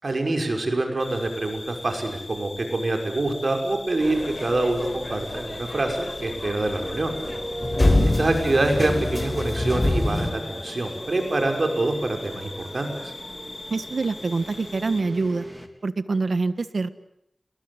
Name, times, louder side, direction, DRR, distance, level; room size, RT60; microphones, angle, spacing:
voice 1, 0.0-7.1 8.2-13.1, right 2 dB, 70° right, 4 dB, 6.1 m, -25 dB
sound 1, 1.0-15.0, left 2 dB, 65° left, 3.5 m, -41 dB
sound 2, 4.0-10.3, left 2 dB, 45° left, 5.1 m, -26 dB
sound 3, 6.6-15.7, right 1 dB, 15° right, 3.8 m, -38 dB
voice 2, 13.7-15.5 15.8-16.9, right 3 dB, 85° right, 12 dB, 1.5 m, -25 dB
29.5 x 22.0 x 8.2 m, 0.76 s
wide cardioid pair, 50°, 0 cm